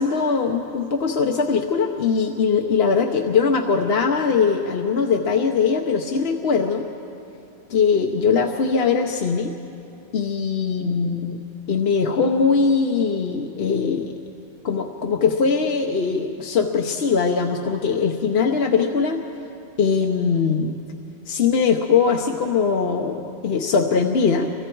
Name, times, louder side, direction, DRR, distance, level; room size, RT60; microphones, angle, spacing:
voice 1, 0.0-6.9 7.7-9.6 10.1-11.4 11.7-14.1 14.6-19.2 19.8-20.8 21.3-24.5, left 5 dB, 70° left, 3 dB, 1.1 m, -21 dB
29.0 x 23.5 x 4.6 m, 2.8 s
omnidirectional pair, 1.1 m